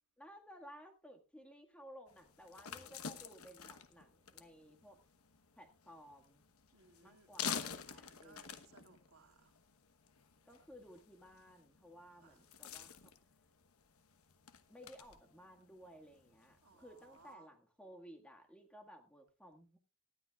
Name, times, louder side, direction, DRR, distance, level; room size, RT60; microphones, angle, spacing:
voice 1, 0.2-5.0 5.6-6.4 7.0-8.7 10.5-13.1 14.7-19.8, equal, 5° left, 1.8 m, -57 dB
sound 1, 2.1-17.3, left 7 dB, 75° left, 1.1 m, -49 dB
voice 2, 6.7-7.3 7.9-9.5 12.2-12.4 16.6-17.5, right 4 dB, 80° right, 2.3 m, -63 dB
19.0 x 12.5 x 2.4 m
head